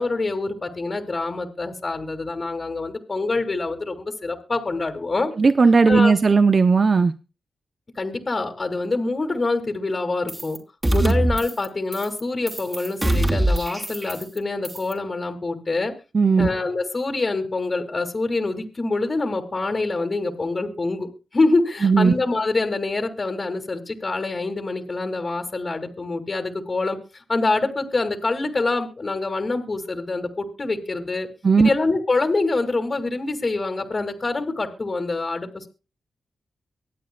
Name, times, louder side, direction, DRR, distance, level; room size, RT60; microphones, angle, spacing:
voice 1, 0.0-5.3 5.9-6.1 8.0-10.6 10.9-15.9 16.4-31.3 31.6-35.7, left 3 dB, 40° left, 4 dB, 2.1 m, -25 dB
voice 2, 5.4-7.1 11.0-11.1 16.1-16.5 21.8-22.1 31.4-31.7, right 4 dB, 50° right, 10 dB, 0.7 m, -16 dB
sound 1, 10.3-10.6 10.8-11.7 11.9-12.2 12.5-14.4 14.6-14.9, right 1 dB, 20° right, 3.3 m, -23 dB
24.0 x 8.5 x 2.3 m, 0.31 s
cardioid pair, 55°, 0 cm